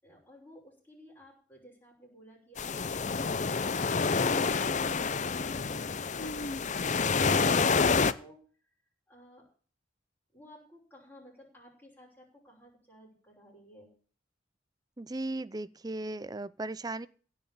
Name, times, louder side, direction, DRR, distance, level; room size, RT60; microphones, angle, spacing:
voice 1, 0.0-8.4 9.1-9.4 10.3-13.9, equal, 10° left, 5.8 m, -55 dB
sound 1, 2.6-8.1, left 5 dB, 40° left, 0.6 m, -28 dB
voice 2, 15.0-17.1, right 2 dB, 20° right, 0.5 m, -36 dB
16.5 x 6.0 x 8.6 m
head